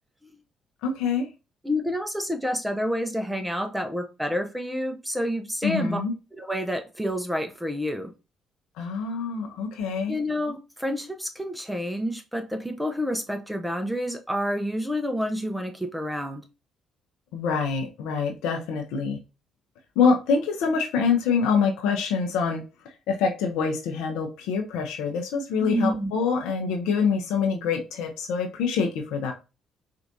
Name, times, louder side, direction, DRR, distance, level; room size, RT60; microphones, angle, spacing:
voice 1, 0.8-1.3 5.6-6.1 8.8-10.1 17.3-19.2 20.0-22.6 23.1-29.3, left 5 dB, 80° left, 0.6 m, -25 dB
voice 2, 1.6-6.0 6.4-8.1 10.1-16.5 25.6-26.1, equal, 5° right, 0.6 m, -29 dB
4.4 x 2.5 x 2.6 m
hypercardioid pair, 55°, 0 cm